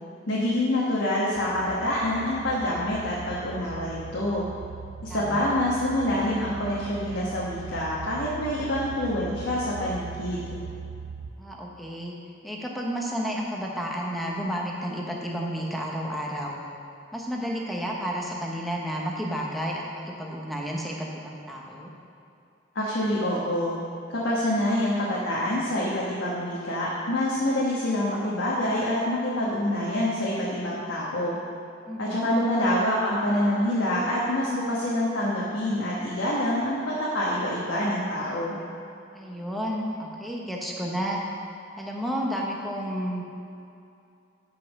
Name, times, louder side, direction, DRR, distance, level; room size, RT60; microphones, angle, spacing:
voice 1, 0.3-4.4 5.0-10.5 22.7-23.8 24.1-31.4 32.0-38.6, left 1 dB, 75° left, -6 dB, 1.4 m, -26 dB
sound 1, 1.4-11.3, right 6 dB, 70° right, 0.5 m, -40 dB
voice 2, 5.1-5.6 11.4-12.1 12.4-16.6 17.1-21.9 31.9-32.3 39.1-41.2 41.8-43.2, equal, ahead, -2 dB, 1.0 m, -31 dB
8.4 x 5.7 x 6.5 m, 2.6 s
head